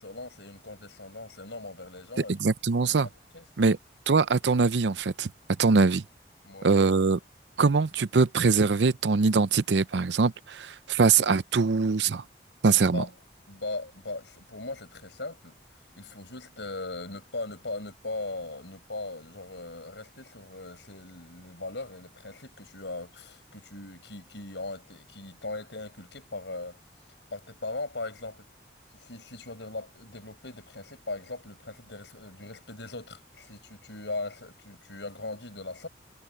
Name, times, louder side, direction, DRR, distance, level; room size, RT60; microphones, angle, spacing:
voice 1, 0.0-2.4 2.8-3.5 6.4-6.7 12.9-13.1 13.5-15.6 16.0-26.8 27.3-28.5 28.9-35.9, left 2 dB, 90° left, 6.7 m, -39 dB
voice 2, 2.4-3.1 3.6-3.8 4.1-5.3 5.6-6.0 6.6-7.2 7.6-12.2 12.6-13.0, right 4 dB, 85° right, 0.6 m, -23 dB
head